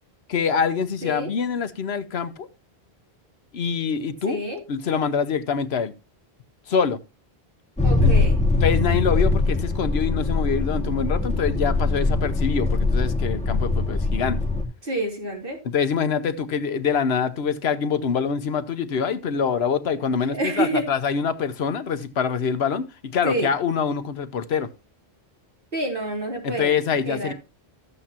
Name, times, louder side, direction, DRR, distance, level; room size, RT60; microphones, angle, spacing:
voice 1, 0.3-2.5 3.5-4.4 4.7-5.9 6.7-7.0 8.0-8.1 8.6-14.4 15.6-24.7 26.4-27.3, left 6 dB, 75° left, 1.1 m, -25 dB
voice 2, 4.3-4.6 7.8-8.4 14.8-15.6 20.3-20.9 23.2-23.5 25.7-26.8 27.0-27.3, right 1 dB, 55° right, 3.3 m, -27 dB
sound 1, 7.8-14.6, left 3 dB, 5° left, 1.9 m, -22 dB
13.5 x 8.3 x 2.8 m
omnidirectional pair, 1.1 m